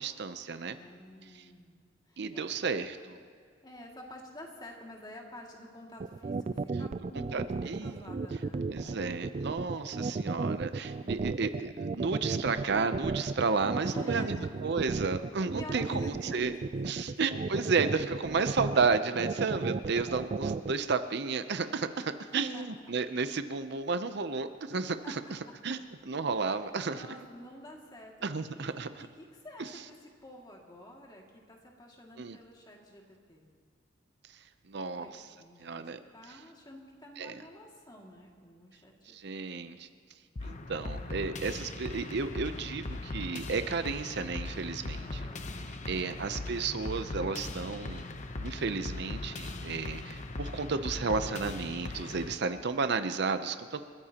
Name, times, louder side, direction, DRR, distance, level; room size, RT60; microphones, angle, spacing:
voice 1, 0.0-0.8 1.3-1.4 2.2-3.2 7.3-8.1 8.7-14.3 14.6-16.5 16.8-25.2 25.6-25.8 26.1-27.2 28.2-29.1 32.2-32.4 34.7-35.2 35.6-36.0 37.2-37.4 39.1-39.9 40.4-45.3 45.7-48.1 48.4-53.8, right 4 dB, 65° right, 10 dB, 0.7 m, -32 dB
voice 2, 0.7-2.6 3.6-9.0 10.2-10.3 13.8-14.7 15.6-16.7 17.0-17.2 19.2-19.3 22.3-22.9 25.0-25.3 25.7-25.8 26.4-26.5 26.9-28.7 29.0-33.5 34.9-35.1 35.4-35.8 36.1-39.2 39.5-40.0 44.8-46.2, left 1 dB, 25° left, -1 dB, 2.3 m, -49 dB
sound 1, 6.0-20.7, right 3 dB, 35° right, 0.3 m, -33 dB
sound 2, 40.4-52.4, left 2 dB, 40° left, 0.8 m, -39 dB
29.5 x 14.0 x 2.9 m, 2.1 s
head